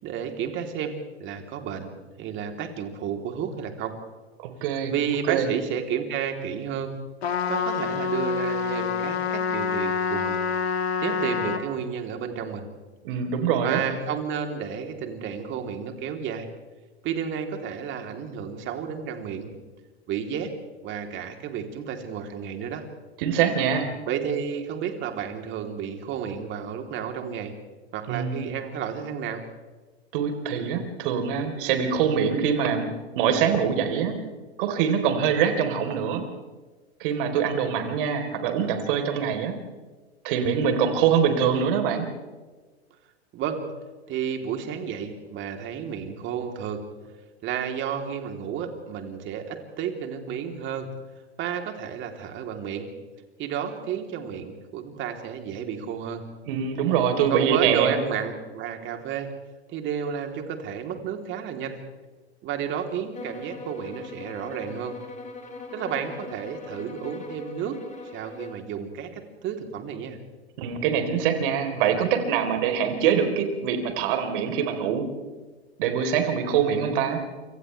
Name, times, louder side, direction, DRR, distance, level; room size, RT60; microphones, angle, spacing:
voice 1, 0.0-1.9 2.2-4.0 4.9-7.0 7.5-10.4 11.0-12.7 13.6-16.5 17.0-19.5 20.1-20.5 20.8-22.8 24.1-27.5 27.9-29.4 43.3-43.6 44.1-46.9 47.4-50.9 51.4-52.9 53.4-56.2 57.3-59.3 59.7-61.8 62.4-65.0 65.7-67.8 68.1-70.2, right 8 dB, 35° right, 4 dB, 3.4 m, -31 dB
voice 2, 4.4-4.9 5.3-5.5 13.0-13.8 23.2-23.9 28.1-28.5 30.1-32.9 33.1-34.2 34.6-36.2 37.0-39.5 40.2-42.1 56.5-58.0 70.6-75.1 75.8-77.2, right 7 dB, 55° right, 5 dB, 4.0 m, -24 dB
Trumpet, 7.2-11.6, left 6 dB, 70° left, 3.1 m, -27 dB
sound 1, 63.1-68.7, left 3 dB, 20° left, 4.7 m, -40 dB
28.0 x 27.0 x 3.4 m, 1.3 s
hypercardioid pair, 100°, 33 cm